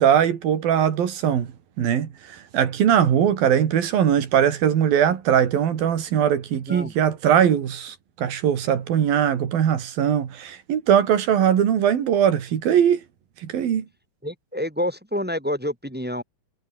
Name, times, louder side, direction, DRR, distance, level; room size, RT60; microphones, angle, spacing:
voice 1, 0.0-1.5 1.8-13.0 13.4-13.9, right 9 dB, 90° right, 4.3 m, -20 dB
voice 2, 14.2-16.2, left 1 dB, 5° right, 0.9 m, -28 dB
omnidirectional pair, 4.0 m